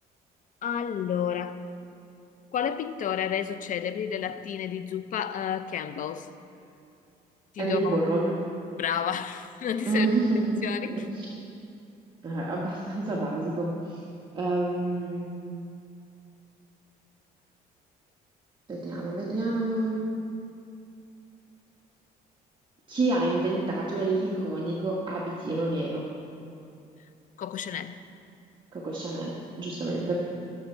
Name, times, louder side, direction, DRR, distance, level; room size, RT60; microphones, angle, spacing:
voice 1, 0.6-1.6 2.5-6.3 7.5-8.0 8.7-10.1 10.4-10.9 27.4-28.0, left 8 dB, 50° left, 11 dB, 0.6 m, -31 dB
voice 2, 7.6-8.3 9.8-11.3 12.2-14.0 14.3-15.3 18.7-20.0 22.9-26.1 28.7-30.2, right 2 dB, 25° right, -4 dB, 1.5 m, -28 dB
18.5 x 7.2 x 4.5 m, 2.6 s
cardioid pair, 110°, 17 cm